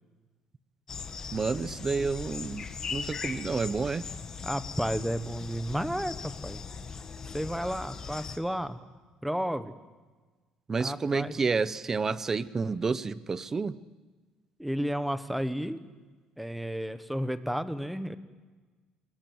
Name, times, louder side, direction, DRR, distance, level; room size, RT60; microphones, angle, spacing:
sound 1, 0.9-8.4, left 5 dB, 30° left, 1.5 m, -39 dB
voice 1, 1.3-4.1 10.7-13.8, right 4 dB, 20° right, 16 dB, 0.8 m, -30 dB
voice 2, 4.4-6.1 6.4-6.6 7.3-8.8 9.2-9.7 10.8-11.3 14.6-15.8 16.4-18.2, equal, ahead, 12 dB, 1.1 m, -32 dB
27.5 x 21.0 x 7.9 m, 1.3 s
cardioid pair, 155°, 2 cm